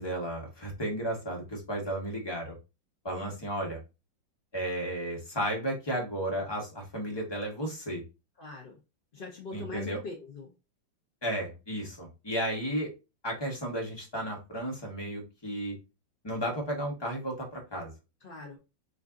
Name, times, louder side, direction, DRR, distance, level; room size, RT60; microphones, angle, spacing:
voice 1, 0.0-2.6 3.0-3.8 4.5-8.0 9.5-10.0 11.2-12.9 13.2-15.7 16.2-17.9, right 1 dB, 20° left, 1 dB, 0.9 m, -33 dB
voice 2, 8.4-8.8 9.1-10.5 18.2-18.6, left 3 dB, 70° left, 1 dB, 0.5 m, -42 dB
6.3 x 2.6 x 2.5 m, 0.28 s
omnidirectional pair, 2.0 m